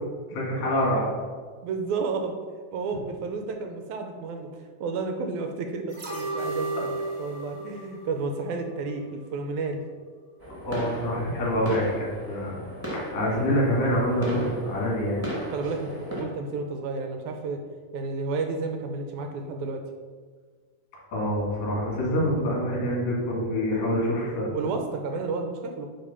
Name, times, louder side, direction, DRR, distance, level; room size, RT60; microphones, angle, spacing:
voice 1, 0.3-1.1 10.6-12.6 12.9-15.2 21.1-24.5, equal, 65° left, -4 dB, 3.8 m, -26 dB
voice 2, 1.6-2.3 2.7-6.9 7.2-9.8 15.5-17.6 17.9-19.8 24.5-25.9, right 4 dB, 80° right, 4 dB, 2.0 m, -31 dB
sound 1, 5.9-9.0 9.4-9.5, right 2 dB, 45° right, 1.2 m, -34 dB
sound 2, 10.4-16.2, equal, 10° right, 1.2 m, -36 dB
9.6 x 3.7 x 5.6 m, 1.5 s
omnidirectional pair, 3.7 m